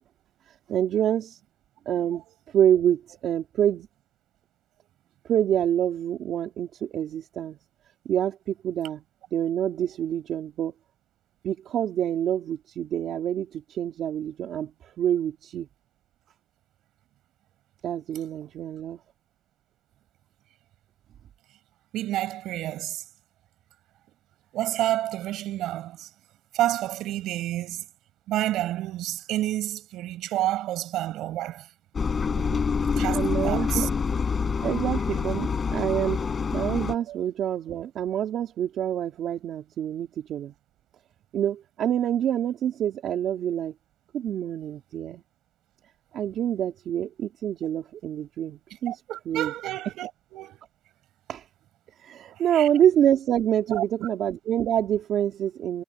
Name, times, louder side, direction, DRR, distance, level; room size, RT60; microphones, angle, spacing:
voice 1, 0.7-1.4 1.8-2.2 2.5-3.9 5.3-7.6 8.0-9.0 9.3-10.7 11.4-15.7 17.8-19.0 32.4-32.6 33.1-33.9 34.6-36.3 36.5-40.5 41.3-43.7 44.1-45.2 46.1-49.0 49.3-49.5 51.3-51.5 52.0-55.8, right 10 dB, 75° right, 3.1 m, -26 dB
voice 2, 21.9-23.0 24.5-26.1 26.5-27.8 28.3-31.6 33.0-33.9 37.1-37.2 48.9-50.6 52.5-52.7 53.7-54.1, right 14 dB, 90° right, 6.3 m, -29 dB
Engine, 31.9-36.9, left 5 dB, 40° left, 7.0 m, -26 dB
cardioid pair, 90°, 0 cm